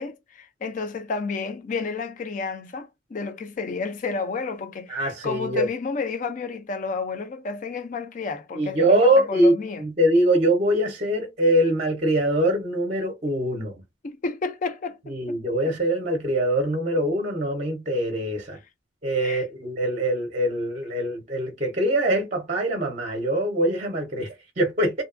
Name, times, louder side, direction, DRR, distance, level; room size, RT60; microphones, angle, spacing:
voice 1, 0.0-9.8 14.0-15.4 19.2-19.4, left 4 dB, 40° left, 0.4 m, -31 dB
voice 2, 4.9-5.7 8.5-13.8 15.1-18.6 19.0-25.0, right 1 dB, 35° right, 0.6 m, -23 dB
2.6 x 2.2 x 2.4 m
head